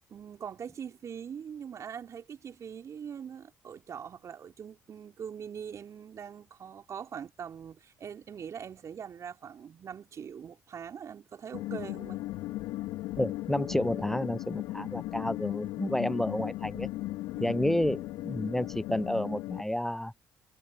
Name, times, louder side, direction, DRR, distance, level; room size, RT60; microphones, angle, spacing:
voice 1, 0.1-12.2 17.3-17.6, right 7 dB, 50° right, 3.2 m, -42 dB
sound 1, 11.5-19.6, left 17 dB, 70° left, 2.5 m, -37 dB
voice 2, 13.2-16.9 17.4-18.0 18.2-20.1, left 1 dB, 5° left, 0.7 m, -30 dB
hypercardioid pair, 50°, 7 cm